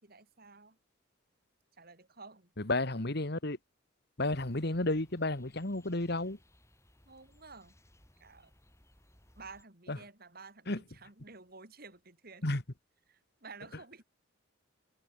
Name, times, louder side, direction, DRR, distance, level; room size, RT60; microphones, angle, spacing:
voice 1, 0.0-0.8 1.8-2.5 7.0-7.8 8.2-8.5 9.4-12.5 13.1-14.0, right 4 dB, 50° right, 3.3 m, -52 dB
voice 2, 2.6-3.6 4.2-6.4 9.9-10.0 10.7-10.8 12.4-12.6, left 2 dB, 55° left, 1.9 m, -32 dB
sound 1, 4.3-9.6, left 1 dB, 15° left, 6.5 m, -64 dB
head